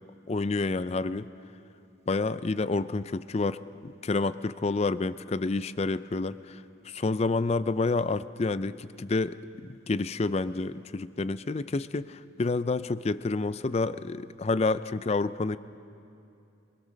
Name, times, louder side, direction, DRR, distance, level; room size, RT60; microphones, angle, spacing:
voice 1, 0.3-1.3 2.1-15.6, left 3 dB, 30° left, 14 dB, 0.4 m, -29 dB
24.0 x 21.5 x 6.5 m, 2.7 s
head